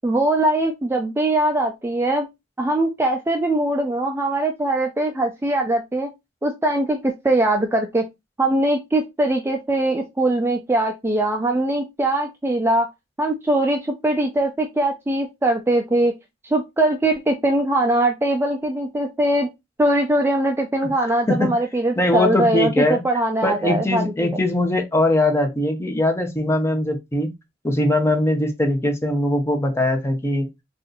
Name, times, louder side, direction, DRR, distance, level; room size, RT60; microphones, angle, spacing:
voice 1, 0.0-2.3 2.6-6.1 6.4-8.0 8.4-12.9 13.2-16.1 16.5-19.5 19.8-24.1, right 1 dB, 15° right, 0.4 m, -21 dB
voice 2, 21.0-21.5 22.0-23.0 23.4-27.3 27.6-30.5, left 1 dB, 15° left, 0.7 m, -21 dB
2.6 x 2.4 x 3.9 m
head